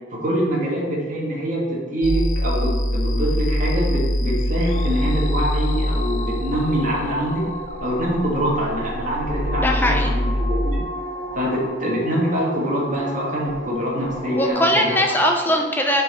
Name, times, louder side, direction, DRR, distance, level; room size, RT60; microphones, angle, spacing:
voice 1, 0.1-7.5 7.8-10.8 11.3-15.0, equal, 40° right, -3 dB, 1.6 m, -24 dB
sound 1, 2.0-10.8, equal, 85° left, 0.7 m, -24 dB
sound 2, 4.6-14.5, equal, 30° left, 1.0 m, -34 dB
voice 2, 9.6-10.1 14.3-16.0, equal, 10° left, 2 dB, 0.6 m, -20 dB
7.4 x 4.5 x 4.1 m, 1.3 s
head